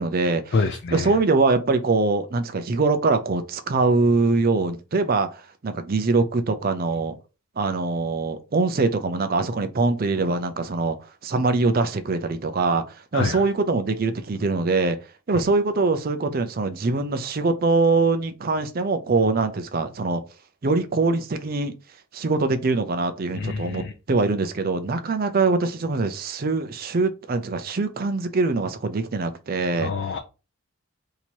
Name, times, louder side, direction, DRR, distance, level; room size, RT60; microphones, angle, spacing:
voice 1, 0.0-0.5 0.9-7.2 7.6-11.0 11.2-12.8 13.1-15.0 15.3-20.2 20.6-21.7 22.1-29.9, right 3 dB, 45° right, 0.5 m, -23 dB
voice 2, 0.5-1.1 13.1-13.4 23.3-23.9 29.8-30.2, left 4 dB, 50° left, 0.4 m, -26 dB
2.8 x 2.8 x 4.4 m
head